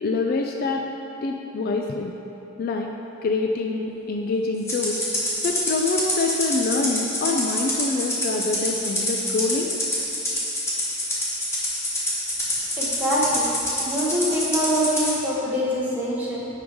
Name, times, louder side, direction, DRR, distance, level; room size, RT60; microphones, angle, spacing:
voice 1, 0.0-0.9 1.2-2.1 2.6-2.9 3.2-5.0 5.4-9.7, left 3 dB, 45° left, 2 dB, 0.3 m, -25 dB
Rattle (instrument), 4.7-15.1, left 1 dB, 15° left, 1.0 m, -26 dB
voice 2, 12.8-13.5 13.8-16.5, equal, 10° right, -7 dB, 1.0 m, -24 dB
5.3 x 4.6 x 5.0 m, 3.0 s
head